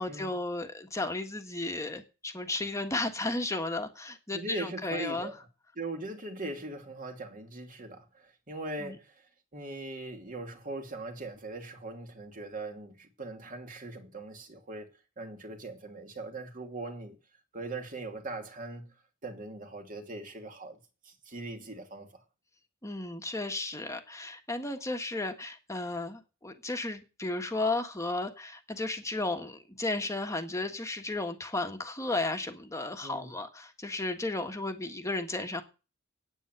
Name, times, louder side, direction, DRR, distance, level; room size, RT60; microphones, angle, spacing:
voice 1, 0.0-5.3 8.8-8.9 22.8-35.6, left 2 dB, 15° left, 1.6 m, -34 dB
voice 2, 4.3-5.4 5.8-9.3 9.5-17.2 17.5-18.9 19.2-20.8 21.0-22.2 33.0-33.3, right 2 dB, 40° right, 2.7 m, -40 dB
9.6 x 9.3 x 8.1 m
head